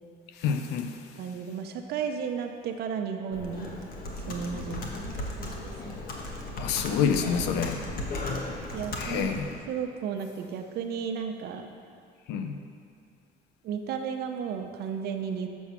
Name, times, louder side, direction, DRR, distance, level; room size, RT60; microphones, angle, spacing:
voice 1, 0.4-1.0 6.5-7.9 9.0-9.6 12.3-12.6, left 7 dB, 90° left, 6 dB, 0.6 m, -28 dB
voice 2, 1.2-3.8 4.3-5.1 5.4-6.0 8.7-9.3 9.7-11.7 13.6-15.5, right 7 dB, 70° right, 5 dB, 0.8 m, -34 dB
Computer keyboard, 3.3-9.5, left 1 dB, 60° left, 1.2 m, -36 dB
7.0 x 6.3 x 5.7 m, 2.4 s
cardioid pair, 110°, 17 cm